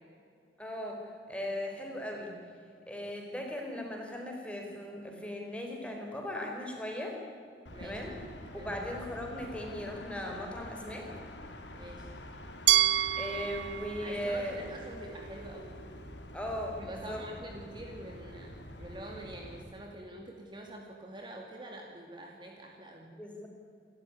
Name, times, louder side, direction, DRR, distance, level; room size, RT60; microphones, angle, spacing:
voice 1, 0.6-2.3 2.9-7.2 7.8-8.2 8.5-11.1 13.2-14.6 16.3-17.2 23.2-23.5, equal, 5° left, 1 dB, 4.3 m, -38 dB
sound 1, 7.7-19.6, left 1 dB, 85° left, 2.8 m, -47 dB
voice 2, 11.8-12.1 14.0-15.8 16.8-23.1, right 1 dB, 25° right, 1 dB, 2.4 m, -46 dB
Glass, 12.7-15.6, right 14 dB, 80° right, 0.5 m, -30 dB
28.5 x 13.5 x 9.9 m, 2.4 s
head